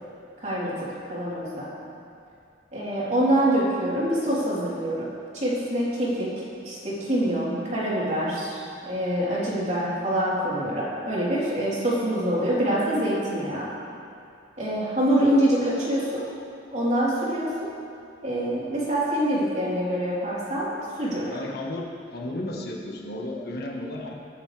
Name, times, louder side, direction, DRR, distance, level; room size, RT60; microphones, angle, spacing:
voice 1, 0.4-1.7 2.7-5.1 5.3-6.3 6.6-13.7 14.6-16.2 16.7-17.7 18.2-21.3, right 1 dB, 40° right, -8 dB, 3.9 m, -25 dB
voice 2, 21.3-24.1, left 1 dB, 60° left, -1 dB, 1.6 m, -34 dB
22.0 x 9.5 x 3.5 m, 2.4 s
head